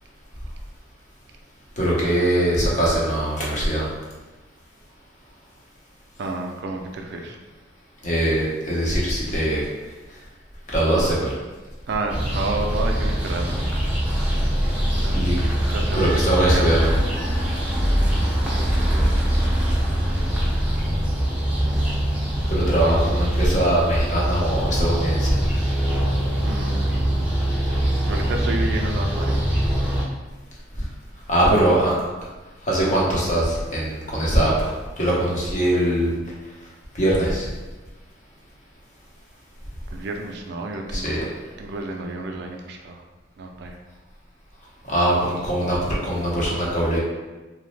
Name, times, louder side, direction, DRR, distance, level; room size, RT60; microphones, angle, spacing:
voice 1, 1.8-3.9 8.0-9.6 10.7-11.3 15.1-15.4 16.0-16.8 22.5-25.4 30.8-30.9 31.3-31.9 32.7-34.7 35.0-36.1 36.9-37.5 40.9-41.3 44.9-47.0, right 1 dB, 40° left, -5 dB, 0.8 m, -21 dB
voice 2, 6.2-7.4 11.9-13.8 14.9-15.3 15.5-17.0 18.4-19.4 26.4-27.3 28.1-29.4 39.9-43.0 43.4-43.8, right 2 dB, 60° right, 2 dB, 0.3 m, -31 dB
sound 1, 12.1-30.0, equal, 5° right, 0.5 m, -23 dB
2.9 x 2.0 x 3.1 m, 1.2 s
head